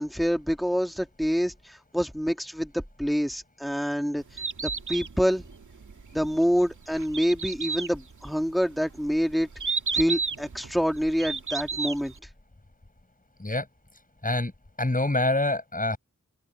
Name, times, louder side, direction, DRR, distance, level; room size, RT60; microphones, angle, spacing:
voice 1, 0.0-4.2 4.6-5.4 6.1-9.5 9.9-12.1, equal, ahead, 2.2 m, -26 dB
Bird, 4.2-12.2, right 5 dB, 80° right, 2.3 m, -33 dB
voice 2, 14.2-14.5 14.8-16.0, left 2 dB, 30° left, 6.1 m, -25 dB
open air
wide cardioid pair, 65°, 30 cm